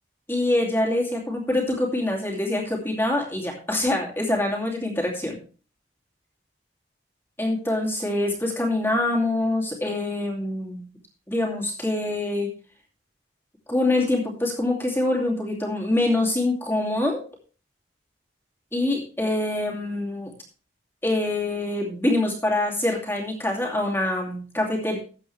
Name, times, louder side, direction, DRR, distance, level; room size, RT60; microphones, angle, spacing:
voice 1, 0.3-5.4 7.4-10.8 11.3-12.5 13.7-17.2 18.7-20.3 21.0-25.0, left 1 dB, 10° left, -1 dB, 2.6 m, -25 dB
13.5 x 8.4 x 3.3 m, 0.38 s
head